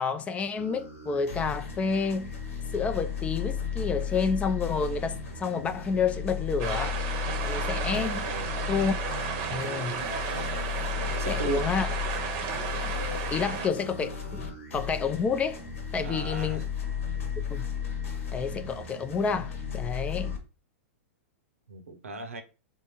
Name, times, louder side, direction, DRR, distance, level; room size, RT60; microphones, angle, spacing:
voice 1, 0.0-2.3 2.7-7.0 7.4-8.3 8.7-8.9 9.5-10.1 11.3-11.9 13.1-15.6 15.9-16.6 17.5-17.7 18.3-20.4, left 5 dB, 15° left, 0.3 m, -29 dB
sound 1, 0.6-20.4, left 7 dB, 75° left, 1.1 m, -34 dB
sound 2, 6.6-13.7, right 7 dB, 40° right, 0.7 m, -33 dB
voice 2, 8.1-8.6 11.0-11.7 16.0-16.6 21.7-22.4, right 4 dB, 90° right, 0.7 m, -38 dB
3.5 x 2.5 x 2.9 m
hypercardioid pair, 115°, 7 cm